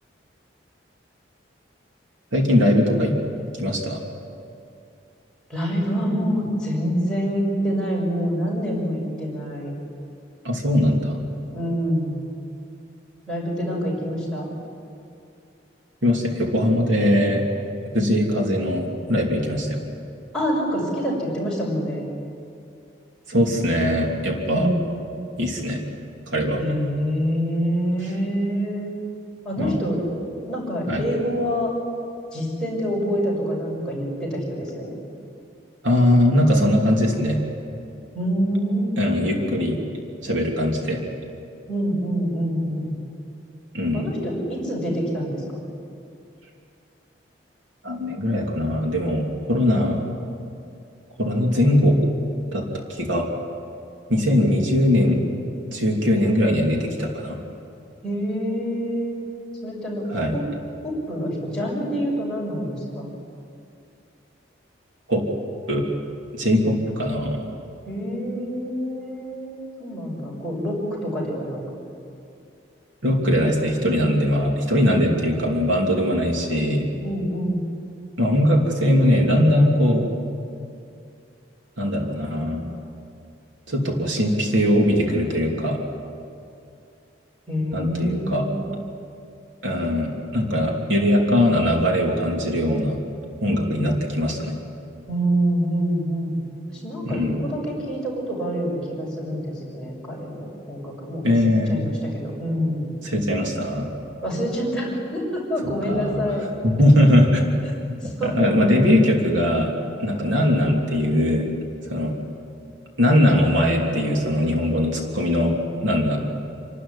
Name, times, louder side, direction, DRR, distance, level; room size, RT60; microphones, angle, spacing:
voice 1, 2.3-3.1 3.6-4.0 10.4-11.3 16.0-17.4 17.9-19.8 23.3-24.7 25.4-25.8 26.3-26.6 29.6-29.8 30.9-31.0 35.8-37.4 39.0-39.8 40.2-41.0 43.7-44.1 47.8-50.0 51.2-52.0 52.5-52.6 52.9-53.3 54.1-55.2 55.7-57.4 60.1-60.3 65.1-65.2 65.7-65.8 66.3-67.4 73.0-76.9 78.2-80.0 81.8-82.7 83.7-85.8 87.7-88.5 89.6-93.0 93.4-94.6 97.0-97.4 101.2-101.8 103.0-103.9 105.9-106.3 106.6-107.5 108.2-109.7 110.0-111.5 111.9-112.2 113.0-116.2, left 1 dB, 80° right, 0 dB, 3.1 m, -20 dB
voice 2, 5.5-9.7 11.5-12.2 13.3-14.5 20.3-22.0 24.5-24.8 26.6-28.9 29.4-30.0 30.4-31.7 32.3-35.0 38.1-39.7 41.7-42.9 43.9-45.6 58.0-59.2 59.6-60.1 60.3-60.5 60.8-63.1 67.9-71.6 77.0-77.6 87.5-88.8 95.1-96.4 96.7-101.2 101.7-102.9 104.2-106.4 107.6-108.5, equal, 5° left, -6 dB, 6.3 m, -26 dB
28.0 x 13.0 x 10.0 m, 2.5 s
head